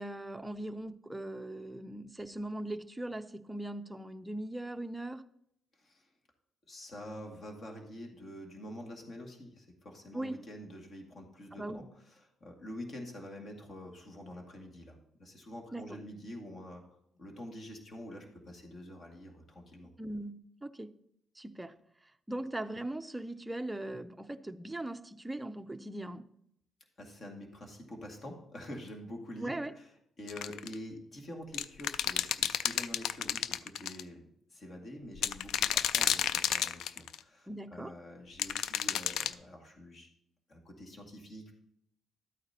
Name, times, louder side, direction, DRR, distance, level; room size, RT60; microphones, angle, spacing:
voice 1, 0.0-5.2 10.1-10.4 11.5-11.9 15.7-16.0 20.0-20.9 21.4-21.8 22.3-26.3 29.4-29.7 37.5-38.0, right 1 dB, 10° right, 9 dB, 0.5 m, -40 dB
voice 2, 5.7-6.1 6.7-19.9 22.3-22.4 27.0-29.9 30.2-40.1 40.5-41.5, left 1 dB, 40° left, 1 dB, 2.2 m, -47 dB
sound 1, 30.3-30.7 31.5-34.0 35.2-37.2 38.4-39.3, left 10 dB, 80° left, 0.3 m, -31 dB
12.5 x 8.8 x 2.9 m, 0.74 s
cardioid pair, 90°, 0 cm